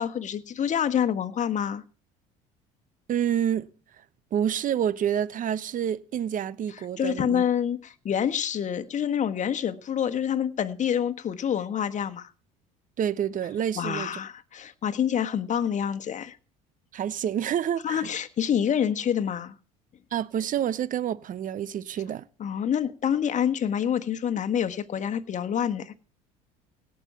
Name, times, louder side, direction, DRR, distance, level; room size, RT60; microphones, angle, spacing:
voice 1, 0.0-1.8 7.0-12.3 13.7-16.4 17.8-19.5 22.4-25.9, left 9 dB, 40° left, 1.5 m, -27 dB
voice 2, 3.1-3.7 4.3-7.4 13.0-14.1 16.9-18.1 20.1-22.3, right 9 dB, 45° right, 1.0 m, -28 dB
17.5 x 6.3 x 8.3 m
supercardioid pair, 80°, 19 cm